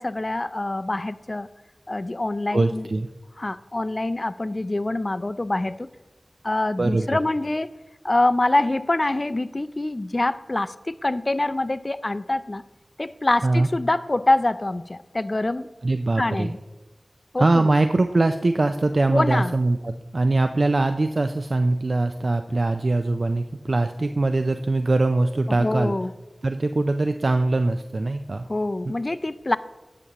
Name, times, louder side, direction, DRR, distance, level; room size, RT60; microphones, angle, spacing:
voice 1, 0.0-1.5 1.9-2.9 3.4-5.9 6.4-7.7 8.0-12.6 13.0-15.7 16.2-16.6 17.3-17.7 19.1-19.6 25.5-26.1 28.5-29.6, left 2 dB, 45° left, 14 dB, 0.4 m, -25 dB
voice 2, 2.5-3.1 6.8-7.2 13.4-13.7 15.8-16.5 17.4-25.9 26.4-28.5 28.9-29.0, right 2 dB, 65° right, 8 dB, 0.3 m, -22 dB
12.0 x 6.7 x 2.9 m, 1.2 s
cardioid pair, 40°, 0 cm